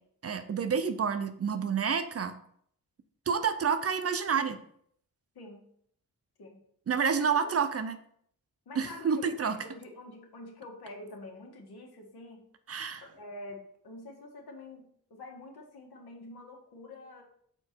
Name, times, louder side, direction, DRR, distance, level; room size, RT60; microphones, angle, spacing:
voice 1, 0.2-2.3 3.3-4.6 6.9-8.0 8.8-9.6 12.7-13.0, right 6 dB, 40° right, 10 dB, 0.5 m, -29 dB
voice 2, 7.2-7.5 8.7-12.4 13.0-17.2, left 2 dB, 85° left, 1 dB, 1.7 m, -47 dB
6.6 x 4.5 x 4.4 m, 0.65 s
wide cardioid pair, 175°, 37 cm